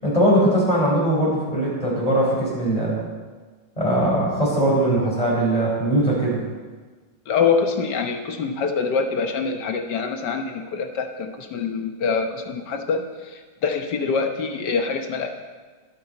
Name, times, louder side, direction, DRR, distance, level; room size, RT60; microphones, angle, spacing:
voice 1, 0.0-3.0 3.8-6.4, right 1 dB, 20° left, -5 dB, 4.9 m, -20 dB
voice 2, 7.3-15.3, left 5 dB, 70° left, 5 dB, 1.6 m, -25 dB
21.5 x 8.0 x 4.4 m, 1.4 s
omnidirectional pair, 2.0 m